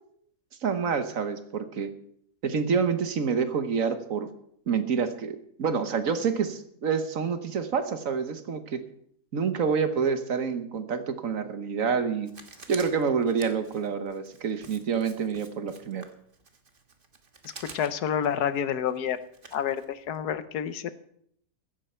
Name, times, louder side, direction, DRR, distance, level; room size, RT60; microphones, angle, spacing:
voice 1, 0.6-1.9 2.4-4.3 4.7-8.8 9.3-12.3 12.7-16.0, right 6 dB, 60° right, 9 dB, 1.5 m, -27 dB
Writing, 12.3-20.2, right 4 dB, 35° right, 1.5 m, -49 dB
voice 2, 17.7-19.2 19.5-20.9, left 9 dB, 85° left, 13 dB, 1.4 m, -28 dB
15.5 x 13.0 x 4.4 m, 0.69 s
omnidirectional pair, 1.6 m